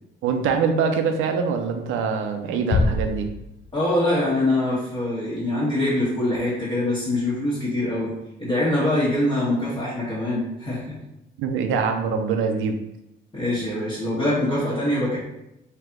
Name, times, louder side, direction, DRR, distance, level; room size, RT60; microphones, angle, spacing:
voice 1, 0.2-3.3 11.4-12.8, right 5 dB, 90° right, 5 dB, 0.5 m, -24 dB
Bass drum, 2.7-4.1, left 3 dB, 60° left, 0.6 m, -25 dB
voice 2, 3.7-8.1 8.4-11.0 13.3-15.2, left 1 dB, 25° left, -10 dB, 1.3 m, -24 dB
3.3 x 2.9 x 3.6 m, 0.86 s
cardioid pair, 90°, 20 cm